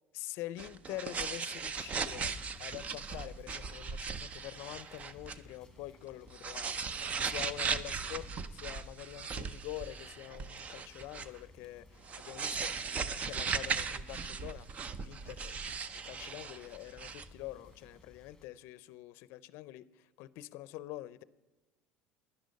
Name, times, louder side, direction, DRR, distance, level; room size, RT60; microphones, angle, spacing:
voice 1, 0.1-6.8 7.2-8.3 8.5-12.7 13.1-14.7 15.0-21.2, left 16 dB, 70° left, 18 dB, 0.5 m, -45 dB
sound 1, 0.6-5.4 5.8-5.9 6.3-11.4 12.0-17.2, right 5 dB, 35° right, 0.6 m, -38 dB
sound 2, 1.6-18.5, left 2 dB, 10° left, 1.8 m, -58 dB
11.5 x 10.5 x 5.2 m, 1.1 s
cardioid pair, 130°, 4 cm